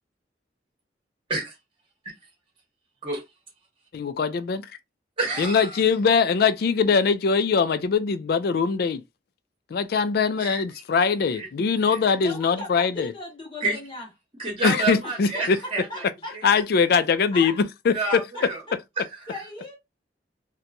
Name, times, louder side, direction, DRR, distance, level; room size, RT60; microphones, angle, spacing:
voice 1, 3.9-4.7 5.4-9.0 9.7-13.1 14.6-15.6 16.4-17.9, left 5 dB, 60° left, 0.3 m, -22 dB
voice 2, 5.2-5.8 10.4-10.6 11.3-11.5 11.9-12.0 13.6-13.8 14.4-16.0 17.9-18.6 19.0-19.4, right 3 dB, 30° right, 0.9 m, -29 dB
voice 3, 12.2-14.1 15.0-16.3 17.3-17.6 19.3-19.8, left 2 dB, 30° left, 0.8 m, -38 dB
2.8 x 2.2 x 2.5 m
head